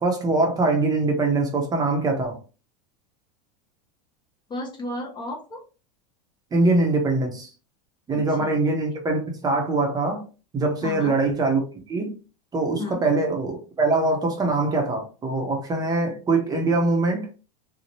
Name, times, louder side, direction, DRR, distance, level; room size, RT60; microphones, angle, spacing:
voice 1, 0.0-2.4 6.5-7.5 8.1-10.2 10.5-12.1 12.5-17.3, right 3 dB, 20° right, 2 dB, 0.6 m, -23 dB
voice 2, 4.5-5.6 8.1-8.6 10.8-11.1 12.8-13.0, left 2 dB, 20° left, 1 dB, 0.5 m, -33 dB
2.7 x 2.0 x 3.0 m, 0.34 s
supercardioid pair, 135°, 21 cm